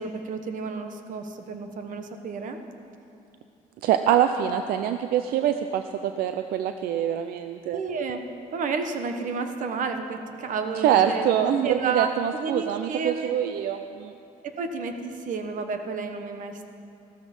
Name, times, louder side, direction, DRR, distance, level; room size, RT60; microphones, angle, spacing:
voice 1, 0.0-2.6 7.7-8.2 8.5-13.4 14.6-16.6, right 4 dB, 60° right, 6 dB, 1.2 m, -31 dB
voice 2, 3.8-7.8 10.8-14.1, right 10 dB, 85° right, 8 dB, 0.5 m, -24 dB
15.0 x 13.0 x 5.4 m, 2.6 s
cardioid pair, 115°, 15 cm